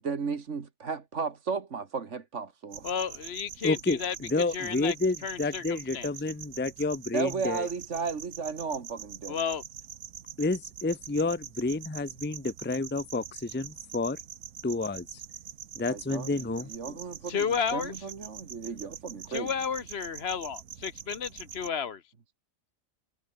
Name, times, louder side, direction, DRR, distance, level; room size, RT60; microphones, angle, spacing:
voice 1, 0.0-2.9 7.1-9.4 15.8-17.5 17.7-19.5, right 5 dB, 65° right, 2.0 m, -34 dB
sound 1, 2.7-21.7, right 9 dB, 85° right, 1.4 m, -44 dB
voice 2, 2.8-4.9 5.2-6.1 9.3-9.6 17.3-18.1 19.3-22.0, left 7 dB, 55° left, 1.2 m, -32 dB
voice 3, 3.6-7.7 10.4-14.2 14.6-15.1 15.8-17.0, left 3 dB, 10° left, 0.7 m, -30 dB
omnidirectional pair, 1.4 m